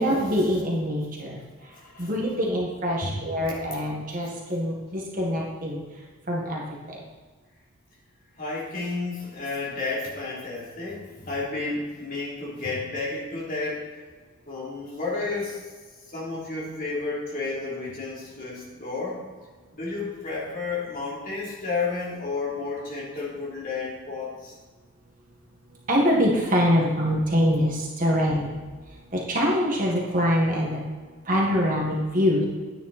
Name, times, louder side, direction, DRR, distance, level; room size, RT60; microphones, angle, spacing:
voice 1, 0.0-1.4 2.0-5.8 6.3-7.0 25.9-28.6 29.1-30.8 31.3-32.4, equal, 35° right, -3 dB, 1.7 m, -24 dB
voice 2, 1.6-2.1 3.0-3.2 4.3-4.4 8.4-14.0 14.5-15.7 16.1-19.2 19.7-24.6, left 3 dB, 40° left, -6 dB, 3.5 m, -32 dB
10.5 x 9.4 x 4.3 m, 1.4 s
head